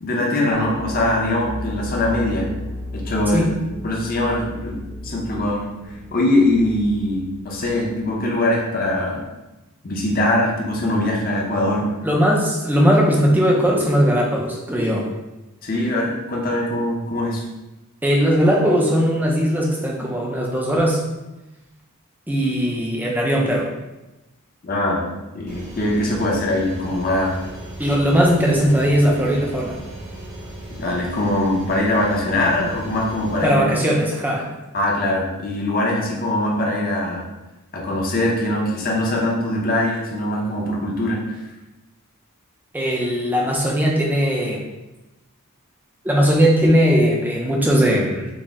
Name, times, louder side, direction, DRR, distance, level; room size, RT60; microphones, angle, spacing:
voice 1, 0.0-2.5 2.9-3.5 3.8-5.6 6.1-9.2 9.8-11.9 15.6-17.4 24.6-25.1 25.3-27.4 30.8-33.6 34.7-37.3 37.7-41.4, left 1 dB, 40° left, -2 dB, 0.6 m, -22 dB
sound 1, 0.5-8.2, left 1 dB, 70° right, 1.3 m, -34 dB
voice 2, 12.0-15.1 18.0-21.0 22.3-23.7 27.8-29.8 33.4-34.5 42.7-44.6 46.0-48.3, equal, 10° right, -2 dB, 0.4 m, -19 dB
sound 2, 25.5-33.5, right 1 dB, 50° right, 1.1 m, -36 dB
4.0 x 2.0 x 3.5 m, 1.0 s
head